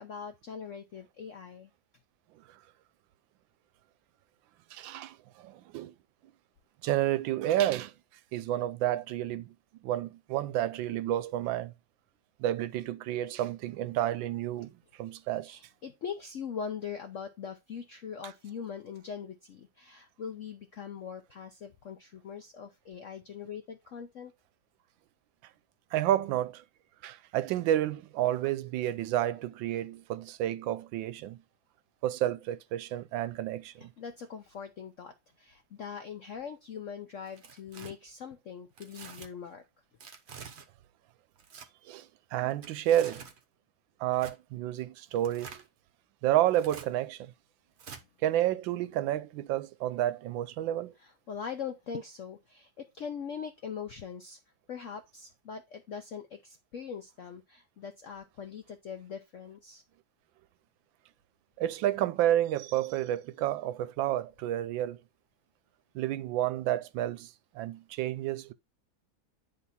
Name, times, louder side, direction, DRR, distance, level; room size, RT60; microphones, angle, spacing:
voice 1, 0.0-1.7 15.4-24.3 34.0-39.6 51.0-54.4 54.7-59.8, left 7 dB, 70° left, 0.7 m, -41 dB
voice 2, 4.7-5.9 6.8-7.9 8.3-9.5 9.8-11.7 12.4-15.6 25.9-26.6 27.0-31.4 32.0-33.9 41.8-43.2 44.0-45.6 46.2-47.3 48.2-50.9 61.6-65.0 65.9-68.5, right 13 dB, 80° right, 1.3 m, -30 dB
Tearing, 37.2-37.9 38.8-39.3 40.0-40.7 41.3-41.7 42.5-43.4 44.1-44.4 45.1-45.7 46.5-46.9 47.8-48.0, right 6 dB, 50° right, 0.8 m, -47 dB
9.5 x 3.6 x 4.1 m
omnidirectional pair, 2.1 m